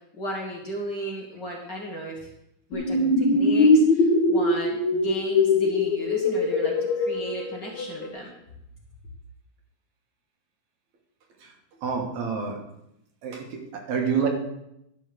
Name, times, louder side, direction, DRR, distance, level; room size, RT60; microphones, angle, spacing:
voice 1, 0.1-2.3 2.7-8.3, right 1 dB, 40° left, -2 dB, 1.9 m, -34 dB
sound 1, 2.7-8.1, left 2 dB, 65° left, 2.8 m, -22 dB
voice 2, 11.8-12.6 13.2-14.3, right 6 dB, 70° right, 1 dB, 2.8 m, -28 dB
11.5 x 6.2 x 6.2 m, 0.81 s
omnidirectional pair, 3.4 m